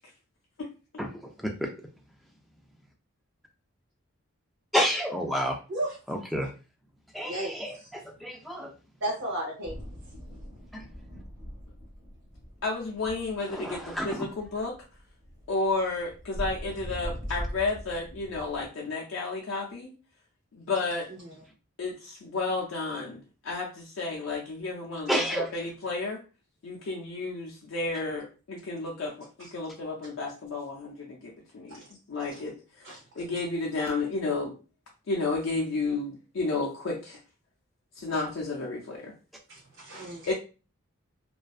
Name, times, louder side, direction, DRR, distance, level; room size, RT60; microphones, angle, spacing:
voice 1, 1.0-1.7 4.7-5.6 6.1-6.5 7.1-8.7 10.7-10.8 13.5-14.2 25.1-25.5, equal, ahead, 1 dB, 0.3 m, -30 dB
voice 2, 7.2-7.5 9.0-9.7 32.8-32.9 39.5-40.3, right 1 dB, 70° right, -3 dB, 0.6 m, -33 dB
sound 1, 9.6-18.7, equal, 20° right, 0.9 m, -41 dB
voice 3, 12.6-14.8 15.5-19.9 20.5-21.1 21.8-26.2 26.6-31.8 32.1-32.9 33.2-34.6 35.1-37.2 38.0-39.1 40.2-40.3, left 3 dB, 70° left, -2 dB, 0.5 m, -32 dB
2.5 x 2.2 x 2.3 m, 0.33 s
head